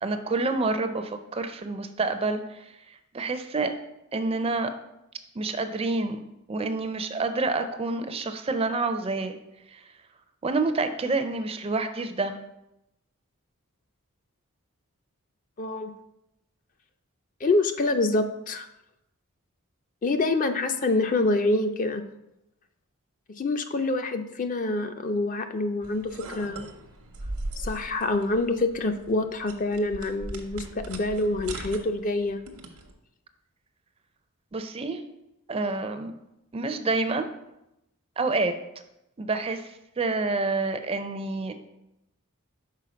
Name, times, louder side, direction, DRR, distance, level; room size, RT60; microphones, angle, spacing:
voice 1, 0.0-3.7 4.1-4.7 5.4-6.2 6.5-9.4 9.7-9.8 10.4-12.4 34.5-35.0 35.5-36.1 36.5-37.3 38.2-38.6 39.2-41.5, right 3 dB, 25° right, 8 dB, 0.4 m, -28 dB
voice 2, 15.6-15.9 17.4-18.7 20.0-22.0 23.4-26.7 27.6-32.4, left 2 dB, 35° left, 8 dB, 0.4 m, -26 dB
sound 1, 25.8-32.9, right 2 dB, 85° right, 0.9 m, -40 dB
5.7 x 4.5 x 5.0 m, 0.88 s
head